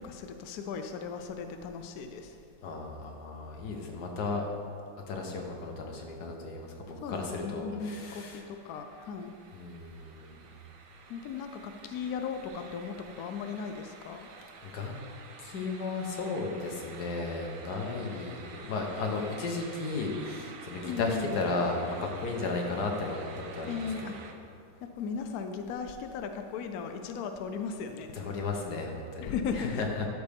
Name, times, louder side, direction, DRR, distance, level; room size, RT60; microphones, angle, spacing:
voice 1, 0.0-2.4 7.0-9.4 11.1-14.3 20.8-21.4 23.7-24.2 24.8-28.2 29.2-29.7, left 6 dB, 80° left, 6 dB, 0.8 m, -37 dB
voice 2, 2.6-4.5 5.1-8.4 9.5-10.5 14.6-14.9 15.4-23.3 23.5-23.9 28.1-30.1, left 3 dB, 55° left, 1 dB, 1.5 m, -34 dB
sound 1, 7.9-24.3, right 5 dB, 80° right, 0.7 m, -50 dB
12.5 x 6.5 x 3.5 m, 2.4 s
omnidirectional pair, 2.2 m